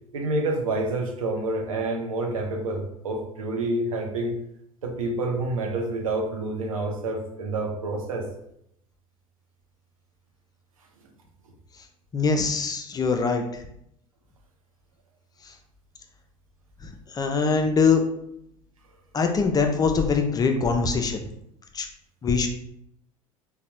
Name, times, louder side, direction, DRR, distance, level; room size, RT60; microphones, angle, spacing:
voice 1, 0.1-4.4 4.8-8.3, right 2 dB, 80° right, 1 dB, 0.6 m, -28 dB
voice 2, 12.1-13.6 15.4-15.5 17.1-18.0 19.1-21.2 21.7-21.9 22.2-22.5, left 4 dB, 20° left, 5 dB, 0.4 m, -23 dB
3.8 x 2.1 x 2.8 m, 0.76 s
figure-of-eight pair, 75°, 17 cm